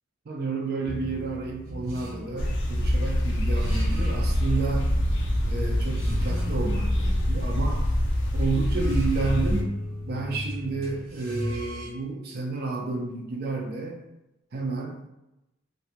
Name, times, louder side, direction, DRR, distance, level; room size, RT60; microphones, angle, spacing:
voice 1, 0.3-4.9 5.4-7.8 8.3-9.7 10.1-14.0 14.5-15.1, right 3 dB, 45° right, 1 dB, 0.5 m, -31 dB
sound 1, 0.8-11.9, left 1 dB, 85° right, 0.7 m, -36 dB
sound 2, 2.4-9.6, equal, 55° left, 0.4 m, -25 dB
2.6 x 2.1 x 2.8 m, 0.93 s
head